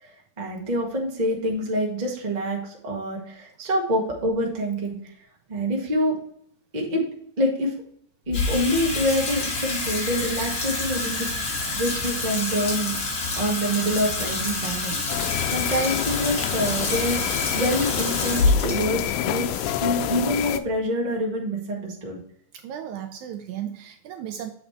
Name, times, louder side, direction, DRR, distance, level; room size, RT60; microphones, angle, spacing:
voice 1, 0.0-5.0 5.5-6.2 6.7-7.1 7.4-7.7 8.3-11.3 11.6-12.9 13.3-22.2, equal, 25° right, -2 dB, 0.9 m, -26 dB
Water tap faucet / Sink (filling or washing), 8.3-20.7, left 3 dB, 45° left, 1.8 m, -28 dB
sound 1, 15.1-20.6, left 12 dB, 85° left, 2.1 m, -28 dB
voice 2, 22.5-24.5, right 10 dB, 80° right, 7 dB, 1.8 m, -35 dB
7.7 x 5.0 x 3.2 m, 0.64 s
omnidirectional pair, 3.7 m